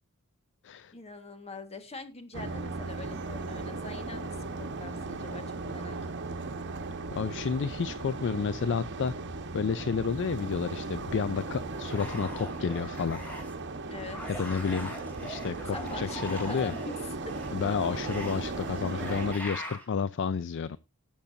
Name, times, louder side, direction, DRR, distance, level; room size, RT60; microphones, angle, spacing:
voice 1, 0.9-6.0 6.3-6.4 13.9-14.2 15.7-16.8 17.2-17.3 18.8-18.9, left 2 dB, 30° left, 7 dB, 1.6 m, -43 dB
sound 1, 2.3-19.3, right 3 dB, 55° right, 1.2 m, -37 dB
voice 2, 7.1-9.1 9.5-13.2 14.4-15.0 15.2-16.7 17.5-20.8, left 5 dB, 55° left, 16 dB, 0.4 m, -31 dB
sound 2, 11.7-13.6 14.0-19.9, equal, 10° left, 3.2 m, -42 dB
18.5 x 7.2 x 2.7 m, 0.25 s
head